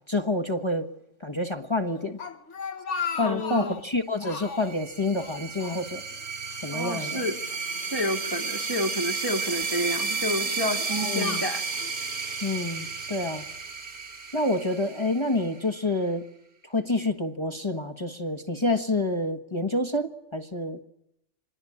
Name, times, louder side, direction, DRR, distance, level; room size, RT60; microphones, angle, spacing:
voice 1, 0.1-0.9 1.2-2.2 3.2-6.0 6.6-7.2 11.0-11.4 12.4-13.4 14.3-16.2 16.7-20.8, left 2 dB, 25° left, 4 dB, 1.4 m, -28 dB
Speech, 2.0-3.9 4.2-4.8 5.2-6.3 6.5-6.7 7.5-8.5 9.2-9.6 10.3-12.0, left 6 dB, 75° left, 1.5 m, -37 dB
voice 2, 3.1-3.8 6.7-7.4 7.8-11.7, left 1 dB, 20° right, 5 dB, 1.5 m, -30 dB
sound 1, 4.4-15.7, right 4 dB, 60° right, 2.5 m, -32 dB
26.0 x 21.5 x 8.7 m, 0.78 s
omnidirectional pair, 1.2 m